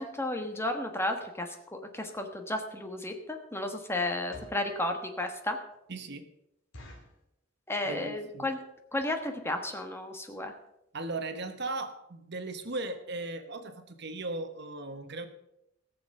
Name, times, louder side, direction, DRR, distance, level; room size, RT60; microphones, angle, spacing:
voice 1, 0.0-5.6 7.7-8.6 8.9-10.5, left 1 dB, 10° left, 5 dB, 1.2 m, -33 dB
sound 1, 2.6-2.7 3.2-3.4 4.1-4.7 5.3-5.4 5.7-5.8 6.1-6.2 6.7-7.2 7.8-8.1 8.4-8.5 8.7-9.0 9.5-9.6 9.8-10.0 10.4-10.5 10.7-10.8, left 1 dB, 75° left, 2.7 m, -50 dB
voice 2, 5.9-6.3 7.8-8.5 10.9-15.3, right 2 dB, 55° right, 8 dB, 1.1 m, -37 dB
18.0 x 7.0 x 5.5 m, 0.83 s
head